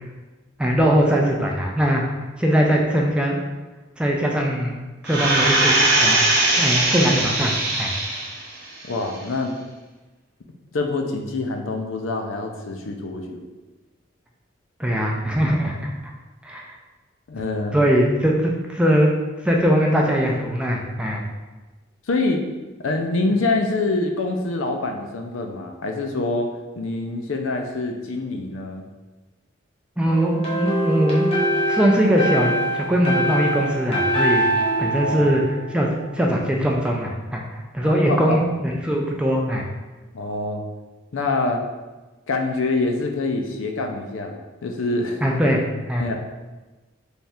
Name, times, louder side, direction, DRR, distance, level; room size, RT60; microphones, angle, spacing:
voice 1, 0.6-3.4 4.0-4.8 5.0-6.2 6.5-7.9 14.8-15.9 16.4-16.7 17.7-19.1 19.4-21.2 30.0-31.3 31.7-34.4 34.8-35.4 35.7-39.7 45.2-46.0, equal, 5° right, -1 dB, 0.3 m, -21 dB
sound 1, 5.1-8.5 8.9-9.0, right 2 dB, 50° right, 0.7 m, -20 dB
voice 2, 8.9-9.5 10.7-13.5 17.3-17.8 22.1-22.4 22.8-26.5 26.8-28.8 34.9-35.3 37.8-38.4 40.1-40.6 41.1-41.6 42.3-45.2 46.0-46.1, left 3 dB, 80° left, 3 dB, 0.5 m, -25 dB
sound 2, 30.1-36.0, right 1 dB, 30° left, 0.8 m, -24 dB
3.4 x 2.4 x 4.2 m, 1.2 s
head